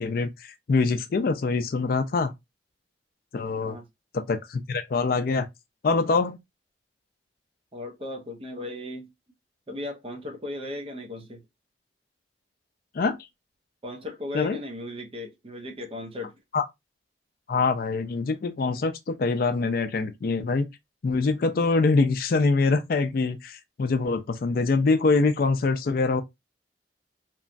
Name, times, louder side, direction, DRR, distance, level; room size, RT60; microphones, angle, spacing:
voice 1, 0.0-2.3 3.3-3.8 4.1-5.5 5.8-6.4 12.9-13.2 14.3-14.6 16.5-16.6 17.5-20.7 21.0-26.2, left 3 dB, 55° left, 0.4 m, -24 dB
voice 2, 7.7-9.1 9.7-11.4 13.8-16.4, left 2 dB, 30° right, 0.7 m, -36 dB
3.0 x 2.3 x 2.4 m
head